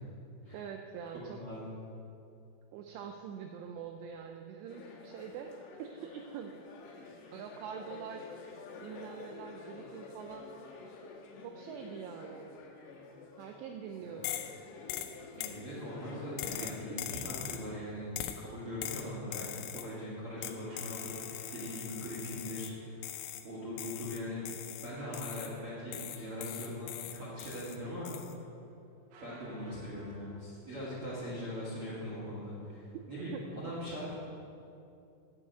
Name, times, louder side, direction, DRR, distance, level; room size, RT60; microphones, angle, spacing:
voice 1, 0.5-1.4 2.7-6.5 7.3-8.3 8.8-10.5 11.4-12.5 13.4-14.5 33.3-33.7, right 7 dB, 90° right, 4 dB, 2.4 m, -44 dB
voice 2, 1.3-1.7 14.0-14.1 15.3-23.0 23.4-24.4 24.8-28.1 29.2-34.1, equal, 50° right, -8 dB, 1.7 m, -41 dB
sound 1, 4.7-17.5, left 4 dB, 70° left, 2.8 m, -50 dB
sound 2, 14.2-14.6 14.9-15.6 16.4-17.7 18.2-18.5 18.8-19.9 20.4-22.8 23.0-23.5 23.8-25.6 25.9-27.8 28.1-28.3, left 12 dB, 85° left, 3.1 m, -41 dB
sound 3, 20.4-30.2, right 2 dB, 70° right, 2.5 m, -58 dB
8.9 x 7.3 x 8.9 m, 2.7 s
omnidirectional pair, 5.6 m